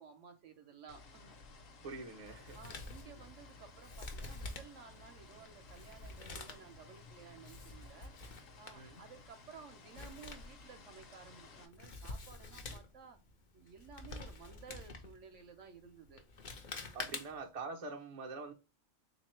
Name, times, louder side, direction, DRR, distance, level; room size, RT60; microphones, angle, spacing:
voice 1, 0.0-1.4 2.5-8.1 8.6-13.2 13.5-16.2 17.0-17.2, right 6 dB, 65° right, 0.9 m, -55 dB
sound 1, 0.9-11.7, left 3 dB, 65° left, 1.2 m, -57 dB
voice 2, 1.8-2.6 8.7-9.0 16.9-18.5, right 3 dB, 35° right, 0.5 m, -45 dB
Male speech man speaking, 2.3-17.6, left 3 dB, 50° left, 0.6 m, -49 dB
3.6 x 2.9 x 3.0 m
omnidirectional pair, 1.5 m